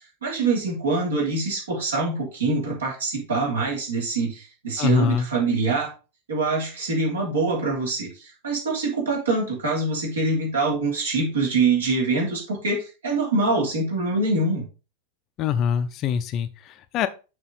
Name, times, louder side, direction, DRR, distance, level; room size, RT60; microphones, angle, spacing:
voice 1, 0.2-5.9 6.3-14.6, right 3 dB, 65° right, -1 dB, 3.2 m, -24 dB
voice 2, 4.8-5.3 15.4-17.1, left 7 dB, 35° left, 11 dB, 0.6 m, -24 dB
6.9 x 5.6 x 4.0 m, 0.31 s
figure-of-eight pair, 90°, 0 cm